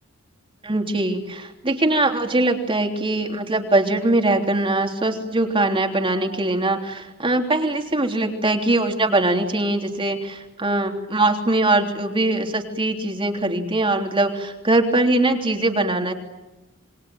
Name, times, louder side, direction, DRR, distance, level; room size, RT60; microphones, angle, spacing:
voice 1, 0.6-16.1, right 2 dB, 25° right, 4 dB, 3.3 m, -22 dB
28.0 x 22.5 x 9.2 m, 1.0 s
head